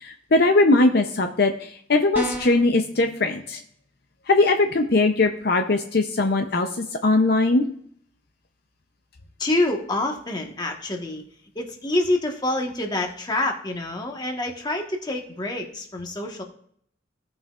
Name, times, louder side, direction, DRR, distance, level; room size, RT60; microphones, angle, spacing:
voice 1, 0.0-3.6 4.3-6.7 7.0-7.7, left 2 dB, 55° left, 5 dB, 0.6 m, -20 dB
sound 1, 2.1-2.7, right 1 dB, 10° right, 1.3 m, -29 dB
voice 2, 9.4-11.2 11.5-16.4, left 2 dB, 25° left, 1 dB, 1.3 m, -26 dB
16.5 x 5.7 x 2.4 m, 0.64 s
head